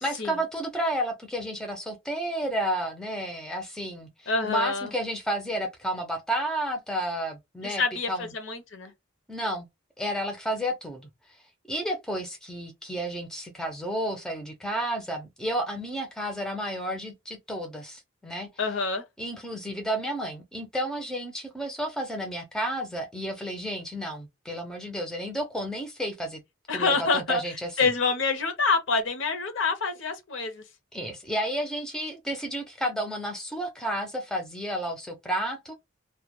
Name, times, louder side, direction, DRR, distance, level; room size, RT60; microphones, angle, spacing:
voice 1, 0.0-4.1 4.4-7.8 8.1-8.3 9.3-9.7 10.0-11.1 11.7-18.5 19.2-26.4 26.7-27.9 30.9-35.7, right 1 dB, 5° left, 0.4 m, -31 dB
voice 2, 4.3-4.9 7.6-8.9 18.6-19.0 26.7-27.4 27.8-30.6, left 4 dB, 60° left, 0.6 m, -26 dB
2.1 x 2.1 x 2.8 m
head